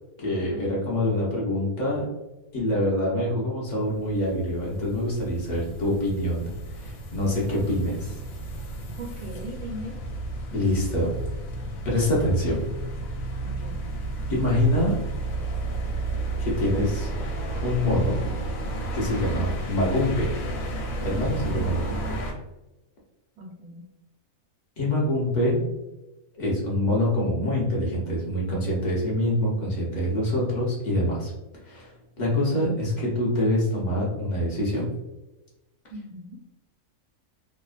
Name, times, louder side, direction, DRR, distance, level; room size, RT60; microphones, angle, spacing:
voice 1, 0.2-2.1 2.5-8.2 10.5-11.2 11.8-12.7 14.3-15.0 16.4-17.1 17.6-18.2 18.9-20.3 21.0-22.2 24.8-25.6 26.4-31.3 31.6-34.9, left 1 dB, 50° left, -4 dB, 0.5 m, -25 dB
sound 1, 3.7-22.3, right 2 dB, 75° left, 1.0 m, -32 dB
voice 2, 9.0-10.0 13.4-13.8 19.4-19.5 23.4-23.9 35.9-36.4, equal, 90° right, -1 dB, 1.2 m, -39 dB
2.9 x 2.0 x 2.3 m, 0.99 s
omnidirectional pair, 1.6 m